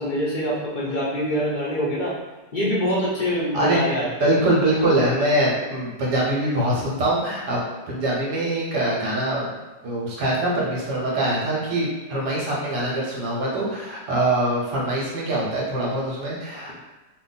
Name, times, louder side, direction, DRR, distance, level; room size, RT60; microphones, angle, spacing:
voice 1, 0.0-2.2 2.5-4.3, equal, 80° left, -6 dB, 0.4 m, -24 dB
voice 2, 3.5-3.8 4.2-7.6 7.9-9.5 9.8-16.7, right 1 dB, 70° right, -4 dB, 1.4 m, -23 dB
3.0 x 2.4 x 3.9 m, 1.1 s
omnidirectional pair, 1.9 m